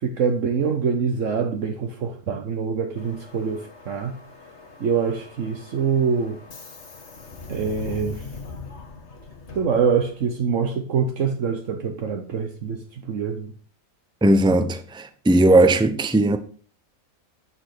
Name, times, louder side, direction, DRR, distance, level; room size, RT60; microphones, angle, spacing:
voice 1, 0.0-4.2 4.8-6.4 7.5-8.2 9.5-13.5, right 6 dB, 70° right, 1.3 m, -25 dB
Subway metro underground, 3.0-10.4, left 4 dB, 55° left, 1.7 m, -41 dB
voice 2, 14.2-16.4, right 2 dB, 5° right, 0.7 m, -17 dB
9.5 x 6.1 x 6.6 m
omnidirectional pair, 1.4 m